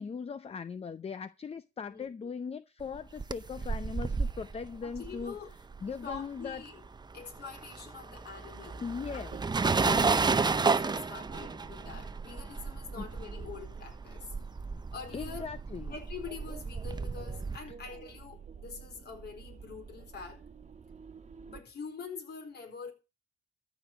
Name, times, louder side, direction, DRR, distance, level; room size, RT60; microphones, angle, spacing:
voice 1, 0.0-5.4 5.8-6.6 8.8-9.4 9.8-10.3 12.9-13.1 15.1-15.9, left 5 dB, 30° left, 0.6 m, -39 dB
voice 2, 1.9-2.3 4.8-5.5 6.0-6.8 7.1-8.8 9.1-14.3 14.9-15.5 15.9-20.4 21.5-22.9, left 5 dB, 55° left, 4.1 m, -45 dB
sound 1, 2.9-6.6 6.8-17.6, right 4 dB, 20° right, 0.7 m, -32 dB
sound 2, 8.5-21.6, right 6 dB, 35° right, 1.4 m, -50 dB
13.5 x 5.1 x 8.0 m
cardioid pair, 90°, 20 cm